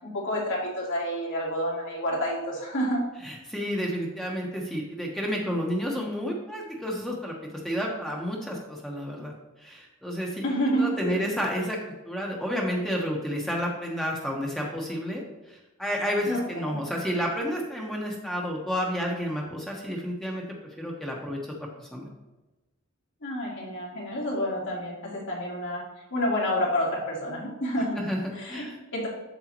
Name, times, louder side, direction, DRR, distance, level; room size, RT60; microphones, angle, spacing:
voice 1, 0.0-3.0 10.4-11.3 16.3-16.8 23.2-25.8 26.1-28.0 28.4-28.6 28.9-29.1, equal, 65° left, -4 dB, 2.8 m, -29 dB
voice 2, 3.2-9.3 9.6-10.4 10.7-11.8 12.0-20.4 20.8-22.1 28.0-28.8, equal, ahead, -2 dB, 1.2 m, -31 dB
8.0 x 7.2 x 3.0 m, 1.1 s
head